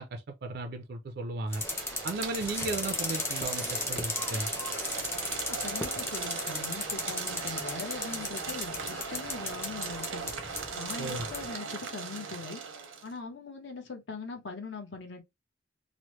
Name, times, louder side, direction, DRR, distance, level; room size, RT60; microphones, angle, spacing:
voice 1, 0.0-1.6 2.0-4.5 11.0-11.3, right 2 dB, 55° right, 0.4 m, -35 dB
sound 1, 1.5-11.5, left 2 dB, 15° left, 0.6 m, -36 dB
sound 2, 1.5-13.1, right 5 dB, 90° right, 0.7 m, -39 dB
voice 2, 5.5-10.3 10.7-12.6 13.0-15.2, left 4 dB, 60° left, 0.9 m, -41 dB
3.0 x 2.0 x 3.0 m
head